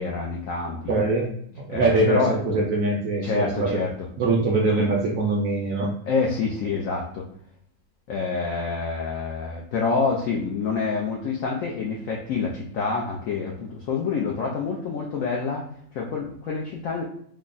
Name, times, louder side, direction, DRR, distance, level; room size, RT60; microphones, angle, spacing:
voice 1, 0.0-0.9 1.7-2.4 3.2-3.9 6.1-7.2 8.1-15.6 15.9-17.0, left 4 dB, 80° left, -1 dB, 0.7 m, -27 dB
voice 2, 0.9-3.8 4.2-5.9, right 2 dB, 70° right, -1 dB, 0.8 m, -23 dB
3.3 x 2.1 x 3.8 m, 0.67 s
omnidirectional pair, 1.9 m